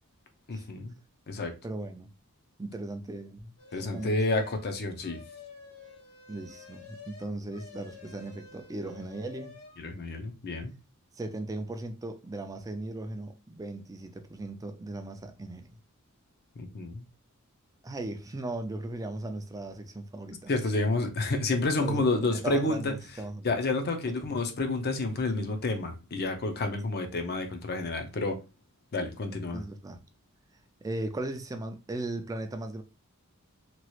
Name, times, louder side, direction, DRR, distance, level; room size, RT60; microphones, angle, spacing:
voice 1, 0.5-0.9 1.3-1.5 3.7-5.2 9.8-10.7 16.6-17.1 20.5-22.9 23.4-28.4 28.9-29.6, left 2 dB, 50° left, 0.6 m, -29 dB
voice 2, 1.6-2.1 2.6-4.2 6.3-9.6 11.2-15.7 17.8-20.5 21.8-23.5 24.1-24.2 29.5-30.0 30.8-32.8, right 2 dB, 15° right, 0.4 m, -37 dB
sound 1, 3.6-4.7 5.0-9.8, left 5 dB, 85° left, 1.3 m, -49 dB
3.0 x 2.4 x 3.0 m
head